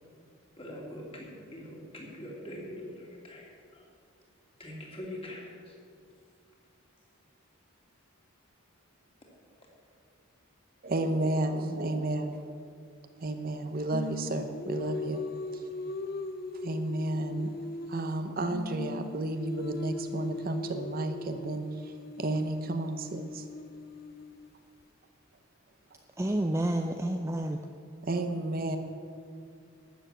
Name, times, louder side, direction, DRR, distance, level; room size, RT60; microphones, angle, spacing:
voice 1, 0.6-3.4 3.7-3.9 4.6-5.8, left 1 dB, 25° left, -2 dB, 2.7 m, -43 dB
voice 2, 10.8-12.4 13.2-15.2 16.6-17.5 17.9-21.7 22.2-23.4 28.0-28.8, right 2 dB, 45° right, 7 dB, 0.7 m, -32 dB
Singing, 13.9-18.2 18.5-24.5, left 2 dB, 45° left, 0.6 m, -39 dB
voice 3, 26.2-27.6, right 1 dB, 15° right, 4 dB, 0.4 m, -29 dB
12.5 x 7.3 x 8.9 m, 2.3 s
head